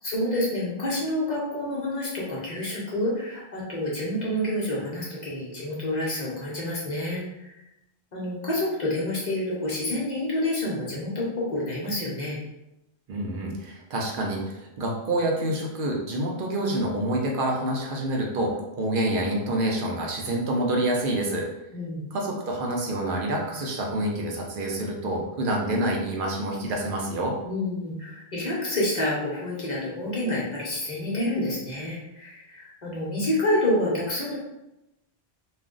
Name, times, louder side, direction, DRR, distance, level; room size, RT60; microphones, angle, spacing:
voice 1, 0.0-7.6 8.1-12.4 21.7-22.1 27.4-34.4, left 1 dB, 45° left, -6 dB, 0.8 m, -28 dB
voice 2, 13.1-21.5 22.1-27.3, right 1 dB, 60° right, -1 dB, 0.7 m, -27 dB
2.4 x 2.2 x 3.7 m, 0.93 s
omnidirectional pair, 1.1 m